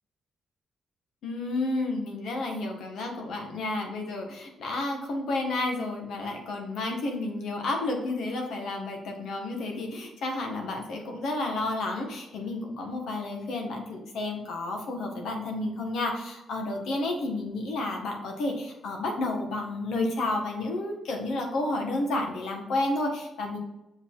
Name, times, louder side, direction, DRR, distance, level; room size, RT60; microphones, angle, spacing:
voice 1, 1.2-23.6, left 2 dB, 80° left, 2 dB, 1.6 m, -31 dB
6.7 x 5.1 x 3.9 m, 0.93 s
cardioid pair, 140°, 0 cm